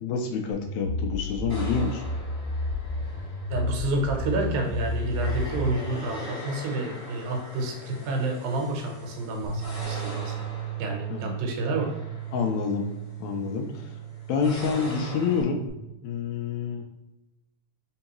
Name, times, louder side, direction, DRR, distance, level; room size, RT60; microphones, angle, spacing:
voice 1, 0.0-2.0 11.1-11.4 12.3-12.9 13.2-13.9 14.3-15.6 16.0-16.8, left 5 dB, 80° left, 4 dB, 1.7 m, -28 dB
sound 1, 0.5-5.9, left 2 dB, 60° left, 0.7 m, -31 dB
sound 2, 1.5-15.4, left 2 dB, 25° left, 0.5 m, -43 dB
voice 2, 3.5-10.5 10.8-11.9, right 2 dB, 85° right, 2 dB, 2.3 m, -29 dB
Bass guitar, 9.4-15.7, right 10 dB, 60° right, 1.9 m, -36 dB
4.5 x 3.5 x 2.9 m, 0.95 s
omnidirectional pair, 3.4 m